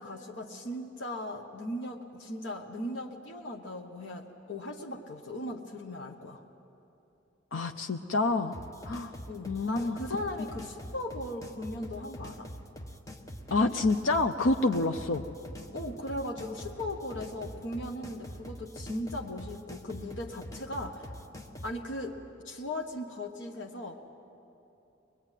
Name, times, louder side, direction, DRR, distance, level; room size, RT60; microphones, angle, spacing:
voice 1, 0.0-6.4 9.3-12.5 15.7-21.1 21.6-22.2 22.4-24.0, left 1 dB, 65° left, 1 dB, 1.3 m, -38 dB
voice 2, 7.5-8.6 8.8-9.2 9.4-10.0 13.5-15.3, left 2 dB, 85° left, 5 dB, 0.7 m, -27 dB
sound 1, 8.5-21.8, equal, 15° left, 1.1 m, -44 dB
23.0 x 21.0 x 9.2 m, 2.9 s
head